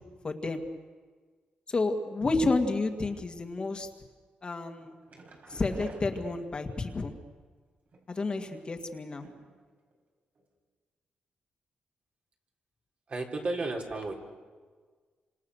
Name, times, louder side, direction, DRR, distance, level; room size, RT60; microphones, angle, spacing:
voice 1, 0.2-0.6 1.7-3.9 4.4-5.0 5.5-7.1 8.1-9.3, left 3 dB, 30° left, 5 dB, 2.1 m, -30 dB
sound 1, 4.8-6.9 7.9-8.8 9.2-9.6 9.9-10.0 10.3-10.4, right 2 dB, 60° right, 5.4 m, -51 dB
voice 2, 13.1-14.1, right 2 dB, 45° right, 0 dB, 3.9 m, -33 dB
28.5 x 26.0 x 6.5 m, 1.5 s
cardioid pair, 125°, 3 cm